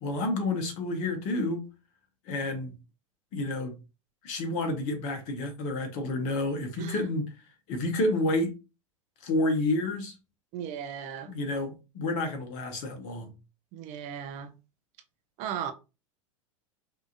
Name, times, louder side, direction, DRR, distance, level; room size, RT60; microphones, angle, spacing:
voice 1, 0.0-1.6 2.3-2.7 3.3-3.7 4.2-7.3 7.7-8.5 9.2-10.1 11.3-13.3, left 2 dB, 50° left, 1.5 m, -29 dB
voice 2, 10.5-11.3 13.7-14.5 15.4-15.7, right 8 dB, 45° right, 0.8 m, -36 dB
5.4 x 3.0 x 2.7 m
figure-of-eight pair, 85°, 17 cm